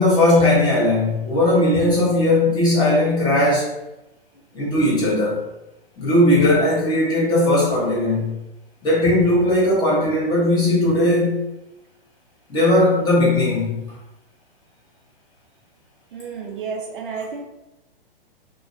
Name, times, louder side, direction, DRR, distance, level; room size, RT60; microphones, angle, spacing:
voice 1, 0.0-3.7 4.5-5.4 6.0-8.3 8.8-11.4 12.5-13.8, left 1 dB, 15° left, -8 dB, 0.8 m, -18 dB
voice 2, 16.1-17.4, right 5 dB, 60° right, 2 dB, 0.5 m, -31 dB
2.4 x 2.1 x 2.4 m, 0.96 s
hypercardioid pair, 120°, 30 cm